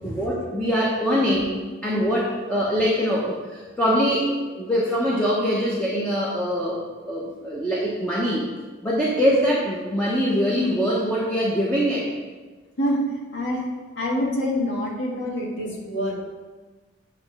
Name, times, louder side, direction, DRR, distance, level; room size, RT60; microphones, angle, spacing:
voice 1, 0.0-1.5 1.8-8.5 8.8-12.1, equal, 5° left, -6 dB, 1.0 m, -23 dB
voice 2, 13.3-13.7 14.0-16.2, left 1 dB, 60° left, -3 dB, 1.8 m, -26 dB
8.7 x 3.2 x 6.1 m, 1.3 s
head